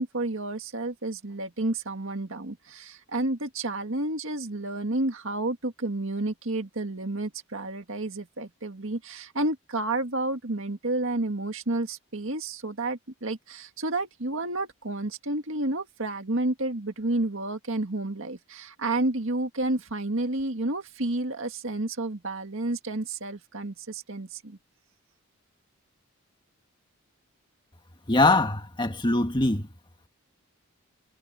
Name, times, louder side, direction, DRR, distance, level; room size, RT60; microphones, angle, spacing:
voice 1, 0.0-24.6, right 2 dB, 60° right, 2.0 m, -30 dB
voice 2, 28.1-29.7, left 2 dB, 20° left, 1.7 m, -22 dB
head